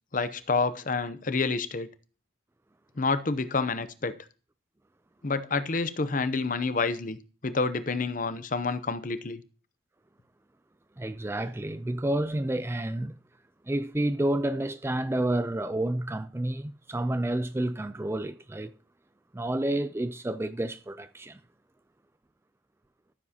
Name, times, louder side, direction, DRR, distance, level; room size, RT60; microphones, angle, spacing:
voice 1, 0.1-1.9 3.0-4.1 5.2-7.2 7.4-9.4, left 4 dB, 40° left, 0.7 m, -28 dB
voice 2, 11.0-13.2 13.6-18.7 19.3-21.4, right 1 dB, 10° right, 0.3 m, -30 dB
13.5 x 7.3 x 2.8 m
head